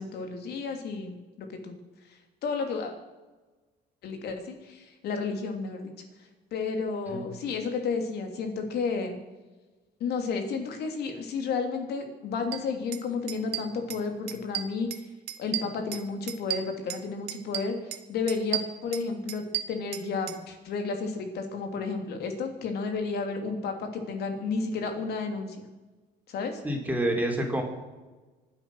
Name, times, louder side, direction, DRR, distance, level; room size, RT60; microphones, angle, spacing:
voice 1, 0.0-1.8 2.4-2.9 4.0-5.9 6.5-9.2 10.0-14.9 15.4-25.6 26.3-26.6, left 4 dB, 70° left, 5 dB, 3.2 m, -32 dB
sound 1, 12.5-12.6 12.9-13.0 13.3-14.0 14.3-15.0 15.3-17.0 17.3-18.0 18.3-20.4, right 13 dB, 75° right, 1.3 m, -34 dB
voice 2, 26.6-27.6, right 1 dB, 10° right, 1 dB, 3.9 m, -27 dB
25.5 x 8.7 x 6.4 m, 1.2 s
cardioid pair, 110°, 17 cm